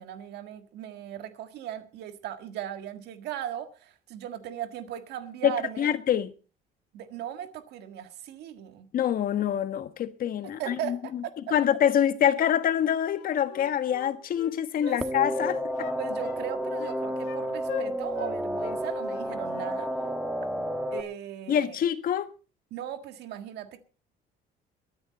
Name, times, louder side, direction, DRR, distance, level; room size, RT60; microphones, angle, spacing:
voice 1, 0.0-5.9 6.9-8.9 10.6-11.3 14.9-15.0 16.0-19.9 20.9-21.8 22.7-23.8, right 10 dB, 80° right, 1.6 m, -38 dB
voice 2, 5.4-6.3 8.9-11.2 11.5-15.9 21.5-22.3, left 9 dB, 60° left, 1.4 m, -26 dB
Wind instrument woodwind instrument, 13.1-15.0 15.3-16.4 16.8-17.4 17.7-18.3 18.6-18.8 19.1-19.7 20.0-20.2, left 13 dB, 85° left, 1.5 m, -40 dB
sound 1, 15.0-21.0, equal, 5° right, 1.8 m, -31 dB
22.0 x 9.9 x 4.2 m
cardioid pair, 110°, 17 cm